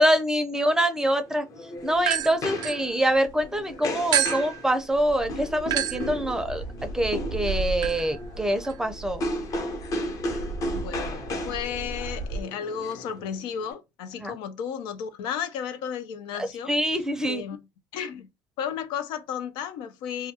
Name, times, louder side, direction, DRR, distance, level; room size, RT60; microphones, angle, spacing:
voice 1, 0.0-1.5 1.8-9.2 14.2-14.4 16.4-17.4, right 1 dB, 5° right, 0.5 m, -25 dB
sound 1, 1.2-13.7, left 1 dB, 45° left, 0.8 m, -35 dB
sound 2, 2.0-3.5 4.1-12.4, right 7 dB, 60° right, 0.4 m, -32 dB
voice 2, 10.7-16.7 17.3-17.6 17.9-18.3 18.6-20.3, left 8 dB, 85° left, 0.4 m, -33 dB
2.3 x 2.2 x 2.8 m
cardioid pair, 105°, 8 cm